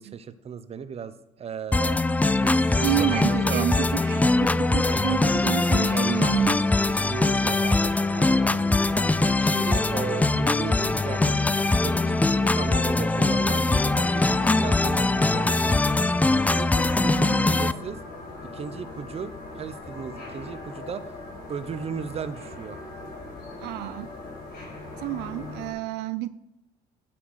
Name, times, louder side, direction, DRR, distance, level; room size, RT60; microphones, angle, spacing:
voice 1, 0.0-2.0 2.4-4.0 4.8-6.4 6.9-8.8 9.4-11.5 11.8-16.0 16.6-18.0 18.5-21.2 21.5-22.8, right 7 dB, 35° right, 13 dB, 0.7 m, -36 dB
sound 1, 1.7-17.7, left 2 dB, 10° left, 0.3 m, -22 dB
voice 2, 2.8-6.6 17.0-17.6 23.6-24.1 25.0-26.3, right 14 dB, 85° right, 15 dB, 0.4 m, -30 dB
sound 2, 5.9-25.7, left 3 dB, 65° left, 4.2 m, -40 dB
9.9 x 5.9 x 6.3 m, 0.86 s
cardioid pair, 110°, 17 cm